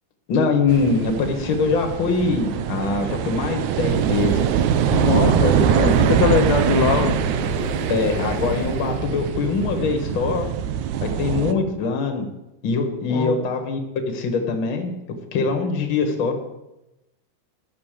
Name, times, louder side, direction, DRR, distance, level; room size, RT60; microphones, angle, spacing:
voice 1, 0.3-4.4 5.4-5.7 7.9-10.5 11.0-12.3 12.6-13.8 14.1-14.9 15.3-16.3, left 4 dB, 45° left, 4 dB, 1.9 m, -23 dB
sound 1, 0.7-11.5, right 10 dB, 75° right, 1.9 m, -23 dB
sound 2, 3.8-9.0, equal, 50° right, 3.8 m, -32 dB
voice 2, 4.9-7.2 13.1-13.3, left 7 dB, 70° left, 3 dB, 1.8 m, -21 dB
11.0 x 6.9 x 6.8 m, 0.94 s
omnidirectional pair, 3.7 m